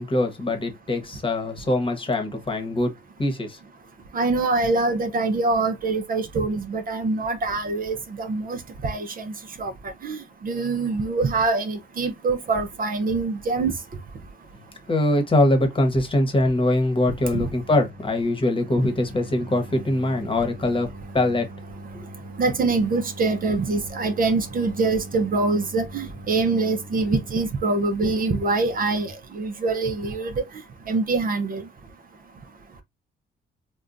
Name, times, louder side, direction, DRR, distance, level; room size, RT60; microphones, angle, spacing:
voice 1, 0.0-2.9 3.2-3.6 14.9-20.9 21.1-21.5 21.9-22.1, left 1 dB, 25° left, 1.1 m, -23 dB
voice 2, 4.1-13.7 17.3-17.5 22.4-30.5 30.9-31.6, right 3 dB, 45° right, 0.7 m, -24 dB
sound 1, 17.3-29.1, right 1 dB, 75° right, 1.0 m, -42 dB
3.6 x 2.3 x 2.5 m
cardioid pair, 90°, 20 cm